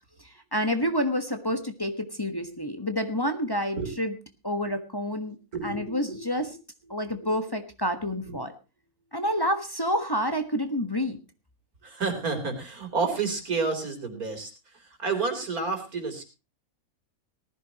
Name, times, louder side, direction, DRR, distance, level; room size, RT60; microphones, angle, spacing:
voice 1, 0.5-4.1 4.4-5.4 5.6-6.5 6.9-8.5 9.1-11.2, equal, 15° left, 7 dB, 1.4 m, -28 dB
voice 2, 5.2-6.2 6.4-6.5 6.8-6.9 8.3-8.4 11.8-16.2, right 4 dB, 85° right, 5 dB, 4.3 m, -30 dB
19.0 x 14.5 x 2.9 m, 0.30 s
omnidirectional pair, 1.5 m